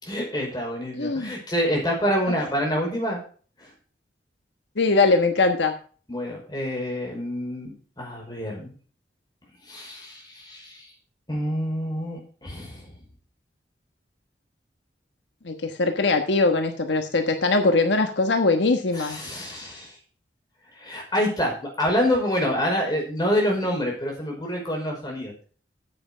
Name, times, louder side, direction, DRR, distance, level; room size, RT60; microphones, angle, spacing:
voice 1, 0.0-3.2 3.6-3.7 6.1-8.7 9.6-10.9 11.3-12.9 18.9-19.9 20.8-25.3, equal, 25° left, -1 dB, 5.2 m, -27 dB
voice 2, 1.0-1.3 2.3-2.4 4.8-5.7 15.4-19.2, left 3 dB, 80° left, 5 dB, 1.3 m, -21 dB
9.5 x 8.0 x 6.2 m, 0.41 s
head